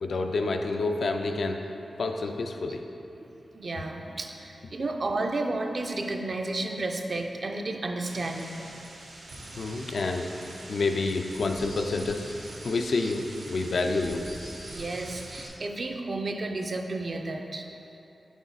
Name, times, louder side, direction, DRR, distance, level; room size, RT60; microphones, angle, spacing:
voice 1, 0.0-1.6 2.0-2.8 9.6-10.3 10.7-12.2 12.6-14.2, left 3 dB, 70° left, 4 dB, 0.4 m, -28 dB
voice 2, 3.2-8.6 13.0-13.1 14.7-17.7, right 2 dB, 50° right, 4 dB, 0.4 m, -32 dB
sound 1, 8.0-15.5, right 1 dB, 80° right, 0.9 m, -43 dB
6.2 x 4.0 x 4.0 m, 2.9 s
wide cardioid pair, 90°, 0 cm